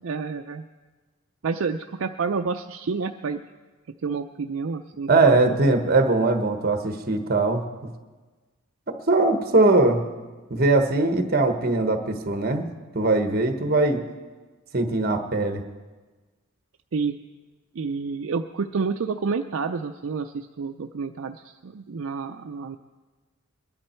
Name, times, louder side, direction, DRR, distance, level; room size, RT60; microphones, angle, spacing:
voice 1, 0.0-0.7 1.4-3.4 4.0-5.6 16.9-17.2 17.7-22.8, right 5 dB, 65° right, 6 dB, 0.5 m, -29 dB
voice 2, 5.1-7.6 8.9-10.0 10.5-12.7 12.9-14.0 14.7-15.6, right 2 dB, 45° right, 6 dB, 1.2 m, -21 dB
22.0 x 11.0 x 4.4 m, 1.3 s
head